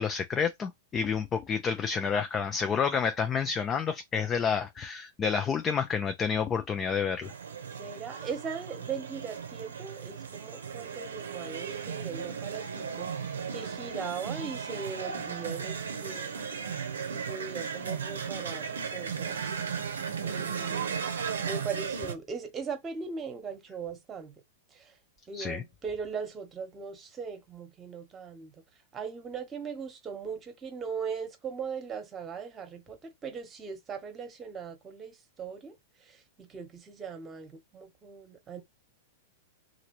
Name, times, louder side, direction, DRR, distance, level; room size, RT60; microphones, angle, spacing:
voice 1, 0.0-7.3 25.3-25.6, left 6 dB, 25° left, 0.4 m, -29 dB
sound 1, 7.2-22.1, right 6 dB, 85° right, 0.6 m, -36 dB
voice 2, 7.8-16.4 17.1-19.6 20.2-21.0 21.4-24.3 24.7-25.0 25.3-28.5 28.9-38.6, right 6 dB, 25° right, 1.1 m, -39 dB
2.9 x 2.5 x 3.0 m
hypercardioid pair, 115°, 0 cm